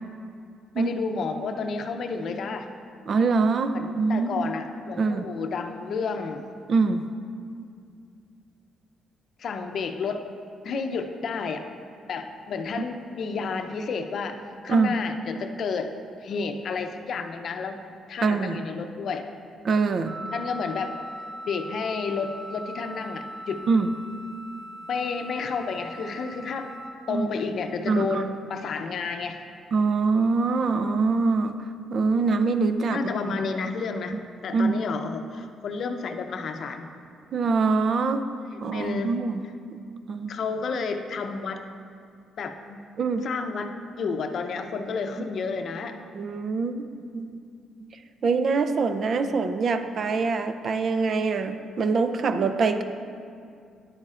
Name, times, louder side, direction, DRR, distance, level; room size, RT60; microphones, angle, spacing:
voice 1, 0.8-2.7 3.7-6.4 9.4-10.2 10.6-11.6 12.1-14.4 14.6-15.9 16.2-17.8 18.1-19.3 20.3-20.9 21.4-23.7 24.9-26.7 27.1-29.4 32.9-34.2 34.4-36.9 38.7-39.2 40.3-41.6 42.4-42.8 43.2-46.0, left 4 dB, 60° left, 6 dB, 0.6 m, -31 dB
voice 2, 3.1-4.5 5.0-5.3 6.7-7.0 14.7-14.9 18.2-18.6 19.6-20.1 23.7-23.9 27.1-27.3 27.9-28.2 29.7-31.6 31.9-33.4 34.5-34.8 37.3-38.3 38.6-39.4 40.1-40.3 43.0-43.3 46.1-47.3 48.2-52.8, right 4 dB, 55° right, 9 dB, 0.5 m, -24 dB
Wind instrument woodwind instrument, 20.0-27.0, right 1 dB, 20° right, 1.4 m, -40 dB
10.5 x 8.7 x 2.5 m, 2.3 s
cardioid pair, 90°, 0 cm